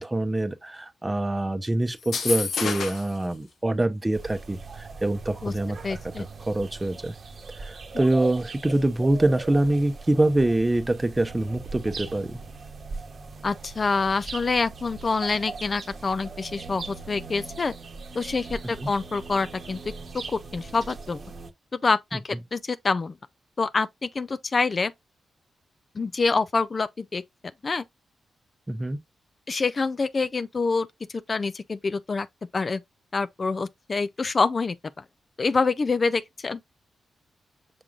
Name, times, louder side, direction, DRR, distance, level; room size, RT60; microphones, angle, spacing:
voice 1, 0.0-7.2 7.6-12.4 18.8-18.9 28.7-29.0, right 1 dB, 20° right, 0.8 m, -25 dB
sound 1, 2.0-3.2, left 5 dB, 75° left, 0.8 m, -29 dB
sound 2, 4.1-21.5, right 4 dB, 60° right, 0.9 m, -40 dB
voice 2, 5.8-6.3 13.4-17.7 18.1-19.8 20.5-21.2 21.7-23.2 23.6-24.9 25.9-27.2 27.6-27.8 29.5-32.3 32.5-32.8 33.1-34.8 35.4-36.6, left 4 dB, 45° left, 0.4 m, -26 dB
6.0 x 3.7 x 2.4 m
supercardioid pair, 50°, 0 cm